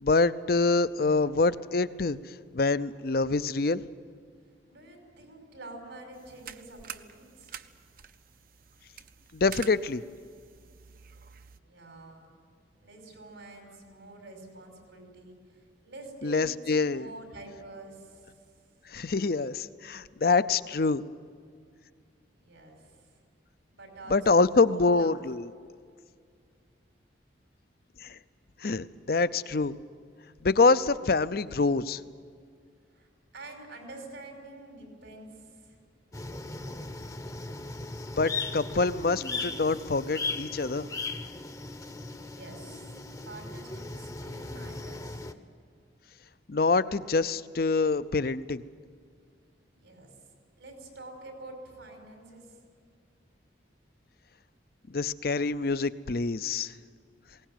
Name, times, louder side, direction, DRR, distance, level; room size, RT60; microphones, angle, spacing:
voice 1, 0.0-3.8 9.3-10.0 16.2-17.1 18.9-21.0 24.1-25.5 28.0-28.2 28.6-29.8 30.4-32.0 38.2-40.9 46.5-48.6 54.9-56.7, left 3 dB, 50° left, 15 dB, 0.6 m, -26 dB
voice 2, 4.7-7.6 11.6-12.4 12.8-18.6 22.3-23.1 23.7-25.2 32.9-33.1 33.3-35.8 42.2-45.3 49.7-50.2 50.6-52.6, right 2 dB, 85° right, 3 dB, 5.5 m, -47 dB
sound 1, 6.1-11.6, right 8 dB, 50° right, 0.7 m, -47 dB
sound 2, 36.1-45.3, left 3 dB, 20° left, 0.8 m, -37 dB
21.0 x 18.5 x 9.2 m, 2.1 s
head